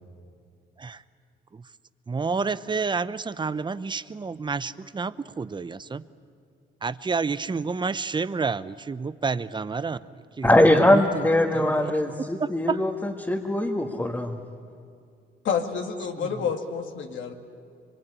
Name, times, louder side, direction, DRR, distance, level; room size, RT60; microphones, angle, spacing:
voice 1, 2.1-6.0 6.8-10.0 10.4-11.3 11.5-12.8 16.2-16.3, right 4 dB, 25° right, 15 dB, 0.7 m, -30 dB
voice 2, 10.4-14.3, left 1 dB, 10° left, 0 dB, 1.8 m, -21 dB
voice 3, 15.4-17.3, left 6 dB, 75° left, 3 dB, 2.3 m, -29 dB
24.5 x 22.0 x 9.9 m, 2.4 s
cardioid pair, 90°, 20 cm